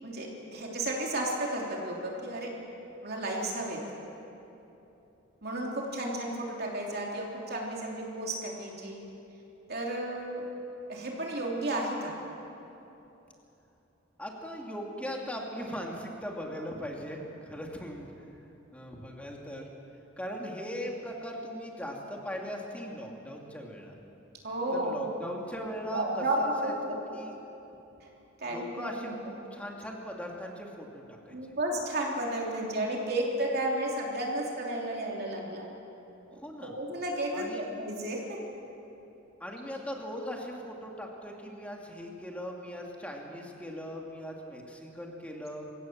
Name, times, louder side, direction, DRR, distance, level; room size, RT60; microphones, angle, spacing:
voice 1, 0.0-2.5 3.0-3.8 5.4-9.0 9.7-10.5 10.9-12.1 24.4-25.3 25.9-27.2 28.4-29.1 31.3-35.6 36.3-38.4, right 1 dB, 50° right, -1 dB, 3.2 m, -33 dB
voice 2, 14.2-18.1 18.7-19.7 20.2-23.9 24.8-26.7 27.1-27.3 28.4-31.4 36.3-36.7 37.3-37.6 39.4-45.7, equal, 5° left, 0 dB, 2.4 m, -39 dB
25.5 x 16.5 x 7.3 m, 3.0 s
head